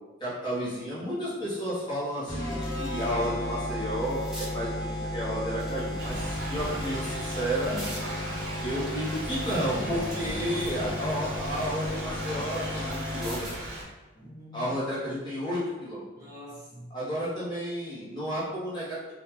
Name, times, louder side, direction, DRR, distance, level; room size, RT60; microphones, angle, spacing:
voice 1, 0.2-7.7 8.6-13.5 14.5-16.0 16.9-19.1, equal, 25° left, -9 dB, 1.0 m, -32 dB
sound 1, 1.2-1.3 1.8-3.3 3.6-4.5 5.5-6.4 7.0-8.1 8.6-10.8 11.2-13.7 15.1-15.3, equal, ahead, 0.6 m, -47 dB
sound 2, 2.3-13.7, left 1 dB, 65° left, 0.8 m, -34 dB
Thunder / Rain, 6.0-13.8, right 1 dB, 55° right, 0.7 m, -37 dB
voice 2, 7.7-8.6 9.7-10.6 14.1-14.7 16.2-16.9, equal, 20° right, -9 dB, 1.0 m, -42 dB
3.5 x 2.4 x 3.0 m, 1.1 s
head